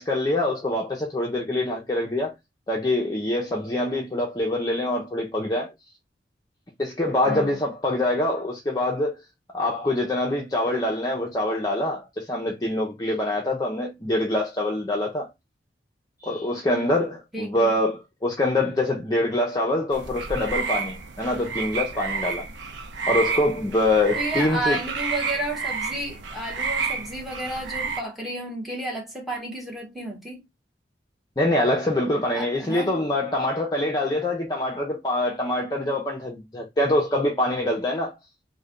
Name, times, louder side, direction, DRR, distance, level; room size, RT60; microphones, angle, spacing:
voice 1, 0.0-2.3 2.7-5.7 6.8-9.2 9.5-15.3 16.2-22.5 23.1-24.8 31.4-38.1, left 1 dB, 20° left, 0.5 m, -25 dB
voice 2, 17.3-17.7 24.2-30.4 32.3-33.0, right 1 dB, ahead, 1.0 m, -32 dB
sound 1, 19.9-28.0, right 5 dB, 90° right, 0.5 m, -30 dB
3.1 x 2.2 x 3.7 m
head